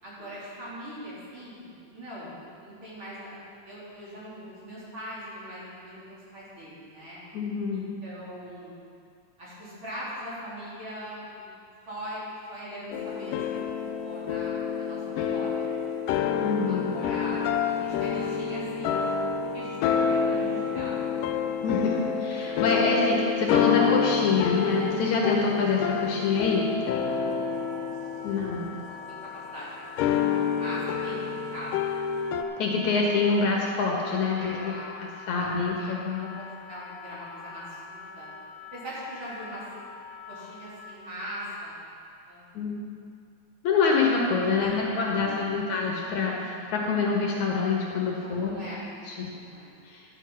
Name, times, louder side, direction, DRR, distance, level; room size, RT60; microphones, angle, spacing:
voice 1, 0.0-7.2 7.7-8.8 9.4-11.5 11.9-13.6 14.0-16.0 16.6-19.1 19.5-20.9 27.2-27.6 28.3-28.5 28.8-31.9 34.3-34.9 35.3-38.3 38.7-39.6 40.3-41.8 42.3-42.4 44.6-44.7 45.1-45.6 48.2-48.9 49.2-49.7, equal, 40° right, -9 dB, 4.2 m, -41 dB
voice 2, 7.3-7.8 16.4-16.9 21.6-26.7 28.2-28.6 32.6-34.7 35.0-36.3 42.5-42.8 43.6-48.6 49.1-49.3 49.9-50.0, left 4 dB, 65° left, -2 dB, 2.7 m, -26 dB
sound 1, 12.9-29.3 30.0-32.4, left 7 dB, 90° left, 2.2 m, -28 dB
Wind instrument woodwind instrument, 27.0-41.1, left 4 dB, 30° left, 1.8 m, -45 dB
12.0 x 9.2 x 5.7 m, 2.4 s
omnidirectional pair, 3.7 m